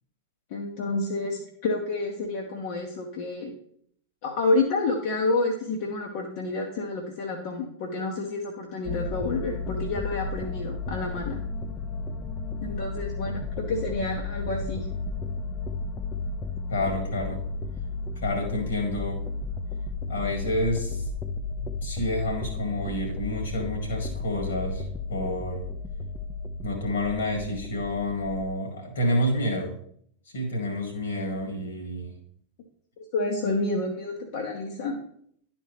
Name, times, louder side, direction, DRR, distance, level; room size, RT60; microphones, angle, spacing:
voice 1, 0.5-3.5 4.2-11.4 12.6-14.9 33.1-35.0, left 2 dB, 50° left, 1 dB, 1.0 m, -29 dB
sound 1, 8.9-28.5, left 3 dB, 20° left, 0.6 m, -33 dB
voice 2, 16.7-17.4 18.2-19.4 20.1-21.0 21.6-24.8 25.1-25.6 26.6-29.8 30.3-32.1, left 1 dB, 65° left, 3 dB, 2.1 m, -29 dB
11.0 x 4.4 x 3.3 m, 0.66 s
figure-of-eight pair, 90°, 0 cm